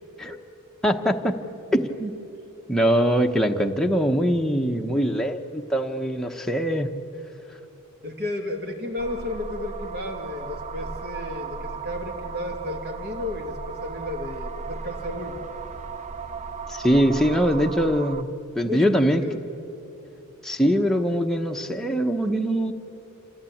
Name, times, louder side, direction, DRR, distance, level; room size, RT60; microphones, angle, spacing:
voice 1, 0.8-1.4 1.7-2.1 2.7-6.9 16.7-18.3 18.5-19.2 20.4-22.7, equal, ahead, 2 dB, 1.0 m, -22 dB
voice 2, 8.0-15.4 17.3-17.6 18.6-19.4, left 2 dB, 50° right, 2 dB, 2.5 m, -33 dB
sound 1, 9.0-18.2, right 4 dB, 30° right, 0.7 m, -36 dB
27.5 x 15.0 x 8.6 m, 2.8 s
head